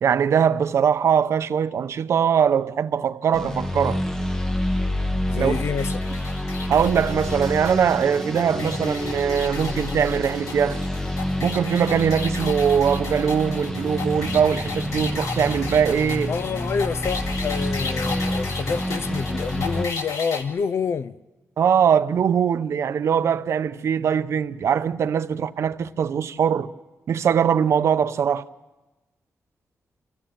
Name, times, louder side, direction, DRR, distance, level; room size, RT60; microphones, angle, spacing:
voice 1, 0.0-4.0 5.4-5.6 6.7-10.8 11.4-16.3 21.6-26.7 27.1-28.4, right 7 dB, 65° right, 0.7 m, -21 dB
sound 1, 3.3-19.9, left 1 dB, 10° left, 0.9 m, -28 dB
voice 2, 5.3-6.1 16.3-21.1, left 6 dB, 60° left, 0.6 m, -28 dB
sound 2, 5.5-20.4, left 4 dB, 80° left, 2.2 m, -35 dB
26.5 x 16.0 x 7.5 m
wide cardioid pair, 135°, 5 cm